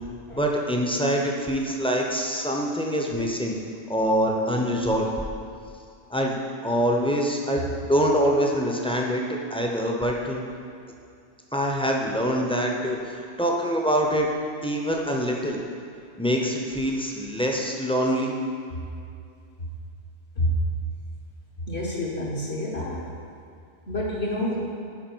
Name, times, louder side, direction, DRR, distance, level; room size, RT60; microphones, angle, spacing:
voice 1, 0.3-3.5 3.9-5.1 6.1-7.6 7.9-10.4 11.5-14.3 14.6-15.6 16.2-18.3, equal, 5° left, -1 dB, 0.6 m, -25 dB
voice 2, 21.6-23.0 23.9-24.7, left 1 dB, 65° left, -5 dB, 1.4 m, -28 dB
11.0 x 4.8 x 4.5 m, 2.4 s
omnidirectional pair, 1.2 m